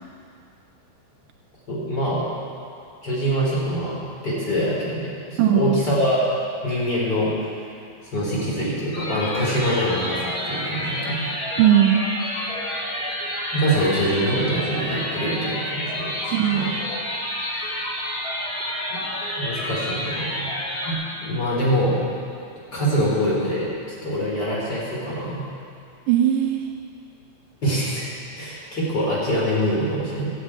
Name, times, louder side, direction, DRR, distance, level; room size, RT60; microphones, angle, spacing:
voice 1, 1.7-2.3 3.0-6.2 6.6-7.3 8.1-11.3 13.5-16.7 18.9-19.0 19.3-20.5 20.8-22.0 22.7-23.7 24.0-25.4 27.6-28.0 28.4-30.3, equal, 30° left, -6 dB, 4.6 m, -24 dB
voice 2, 5.4-5.8 11.6-12.1 16.3-16.8 26.1-26.7, right 10 dB, 85° right, 5 dB, 2.2 m, -18 dB
sound 1, 8.9-20.9, left 1 dB, 45° left, 5.5 m, -29 dB
16.0 x 7.9 x 8.9 m, 2.5 s
omnidirectional pair, 3.8 m